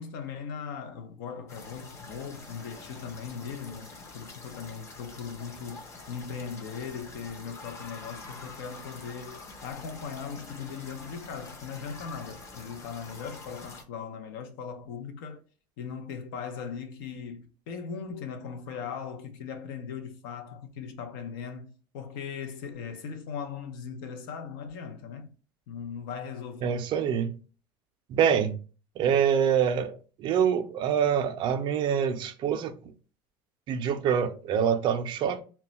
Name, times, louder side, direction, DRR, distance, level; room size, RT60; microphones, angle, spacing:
voice 1, 0.0-15.4 15.8-25.3 25.7-26.8, left 6 dB, 85° left, 0.5 m, -39 dB
sound 1, 1.5-13.8, left 3 dB, 25° left, 0.5 m, -46 dB
voice 2, 26.6-27.4 28.1-28.6 29.0-32.8 33.7-35.4, right 8 dB, 45° right, 0.4 m, -25 dB
2.2 x 2.0 x 3.8 m
supercardioid pair, 130°, 11 cm